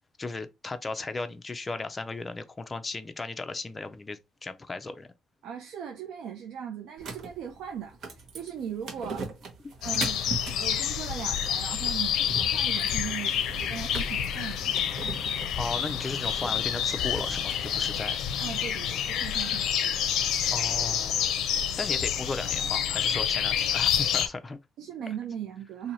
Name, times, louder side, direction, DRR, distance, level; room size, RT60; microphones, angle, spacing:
voice 1, 0.2-5.1 15.6-18.2 20.5-21.3 21.8-24.6, left 3 dB, 25° left, 0.6 m, -36 dB
voice 2, 5.4-9.3 9.8-15.2 18.4-20.1 24.8-25.9, right 8 dB, 85° right, 0.6 m, -39 dB
sound 1, 7.0-18.0, right 4 dB, 65° right, 1.2 m, -41 dB
sound 2, 9.8-24.3, left 9 dB, 80° left, 0.5 m, -28 dB
2.9 x 2.8 x 4.1 m
cardioid pair, 90°, 0 cm